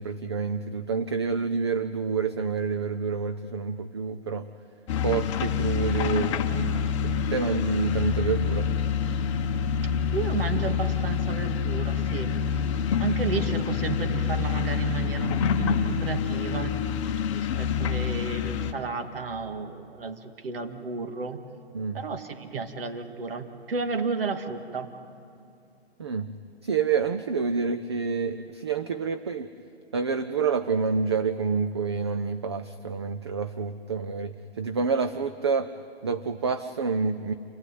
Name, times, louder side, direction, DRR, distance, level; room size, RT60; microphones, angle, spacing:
voice 1, 0.0-4.5 5.0-8.7 21.7-22.0 26.0-26.3 26.6-29.5 29.9-35.7 36.0-37.3, right 5 dB, 25° right, 10 dB, 0.5 m, -28 dB
sound 1, 4.9-18.7, left 7 dB, 30° left, 1.2 m, -27 dB
voice 2, 9.8-12.7 13.0-16.8 17.3-21.4 21.9-24.9, right 4 dB, 60° right, 6 dB, 2.3 m, -32 dB
27.0 x 16.5 x 9.4 m, 2.5 s
hypercardioid pair, 160°, 33 cm